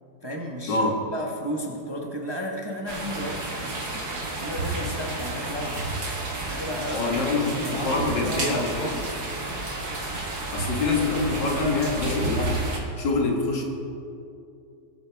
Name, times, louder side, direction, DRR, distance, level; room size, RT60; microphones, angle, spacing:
voice 1, 0.2-4.1 4.4-5.9 6.5-7.3 7.6-9.1, equal, 20° right, 0 dB, 0.9 m, -33 dB
sound 1, 2.9-12.8, right 2 dB, 65° right, 2.2 m, -31 dB
voice 2, 6.9-9.0 10.5-12.6 13.0-13.6, left 3 dB, 85° left, 0 dB, 2.2 m, -25 dB
21.0 x 8.7 x 3.4 m, 2.6 s
omnidirectional pair, 1.9 m